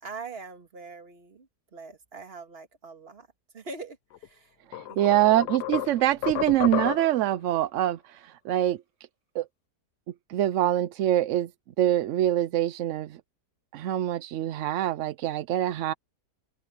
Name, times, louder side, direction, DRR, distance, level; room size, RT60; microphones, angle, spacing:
voice 1, 0.0-3.3 3.5-4.6 4.9-5.3, right 4 dB, 40° right, 1.9 m, -43 dB
sound 1, 4.1-4.3 4.7-7.3, left 14 dB, 80° left, 1.3 m, -32 dB
voice 2, 4.7-8.8 9.3-9.5 10.3-11.5 11.8-13.2 13.7-15.9, right 13 dB, 70° right, 0.7 m, -25 dB
omnidirectional pair, 1.7 m